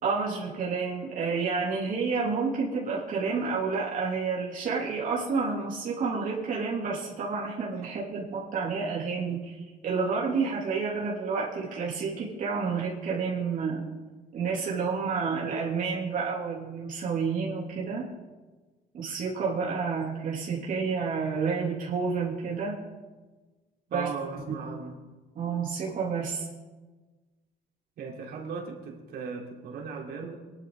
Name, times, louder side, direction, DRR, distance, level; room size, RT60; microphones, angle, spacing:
voice 1, 0.0-13.9 14.3-18.1 18.9-22.8 23.9-24.1 24.5-24.6 25.3-26.5, right 5 dB, 50° right, -5 dB, 3.2 m, -30 dB
voice 2, 23.9-25.0 28.0-30.4, right 5 dB, 70° right, -1 dB, 3.7 m, -37 dB
22.0 x 11.5 x 4.0 m, 1.3 s
cardioid pair, 110°, 17 cm